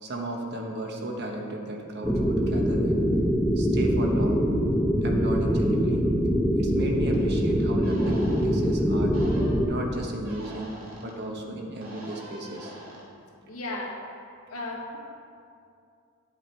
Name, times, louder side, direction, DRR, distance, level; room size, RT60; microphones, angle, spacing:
voice 1, 0.0-3.0 3.5-4.4 5.0-6.1 6.6-9.2 9.6-12.7, right 1 dB, 50° right, 1 dB, 1.1 m, -34 dB
sound 1, 2.0-9.7, equal, ahead, 0.6 m, -23 dB
sound 2, 7.1-7.2 7.8-8.5 9.1-9.6 10.2-11.1 11.8-13.0, equal, 65° right, 2.2 m, -43 dB
voice 2, 13.5-14.0 14.5-15.0, left 2 dB, 80° left, -1 dB, 1.6 m, -34 dB
10.5 x 7.3 x 4.5 m, 2.4 s
head